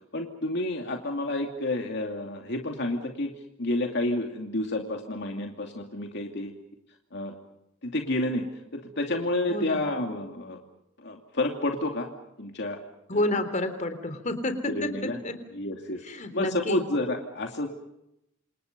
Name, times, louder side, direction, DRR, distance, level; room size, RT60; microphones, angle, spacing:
voice 1, 0.1-3.3 3.6-6.5 7.1-7.3 7.8-8.4 8.7-10.6 11.0-12.1 12.4-12.8 13.1-13.3 14.7-15.2 15.5-16.0 16.3-17.7, left 1 dB, 60° left, 2 dB, 2.6 m, -30 dB
voice 2, 9.5-9.9 13.1-15.4 16.0-16.8, left 1 dB, 40° left, 9 dB, 3.6 m, -29 dB
28.5 x 27.5 x 5.4 m, 0.84 s
head